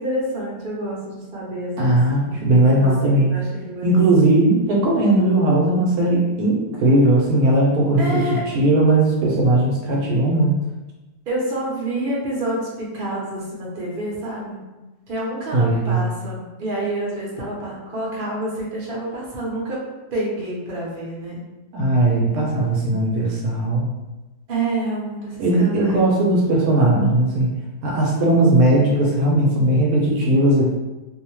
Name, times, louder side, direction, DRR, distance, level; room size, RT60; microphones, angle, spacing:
voice 1, 0.0-2.0 2.3-4.0 8.0-8.4 11.3-14.7 15.1-19.8 20.1-21.5 24.5-26.0, right 1 dB, 45° right, -5 dB, 0.8 m, -28 dB
voice 2, 1.8-3.3 3.8-8.2 8.5-10.5 15.5-16.0 21.7-23.9 25.4-27.5 27.8-30.7, right 1 dB, 75° right, -2 dB, 1.0 m, -18 dB
2.6 x 2.1 x 2.9 m, 1.1 s
omnidirectional pair, 1.6 m